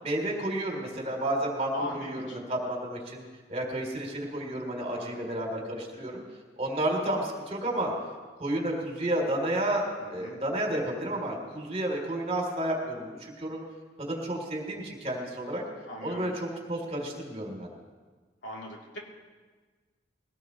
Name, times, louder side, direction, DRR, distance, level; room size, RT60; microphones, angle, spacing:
voice 1, 0.0-6.2 6.6-7.9 8.4-13.6 14.0-15.6 16.0-17.7, right 1 dB, 35° right, 0 dB, 3.5 m, -31 dB
voice 2, 1.7-2.4 4.9-5.2 10.0-10.4 15.8-16.3 18.4-19.0, left 1 dB, 75° left, -3 dB, 3.4 m, -39 dB
22.0 x 18.0 x 3.2 m, 1.4 s
head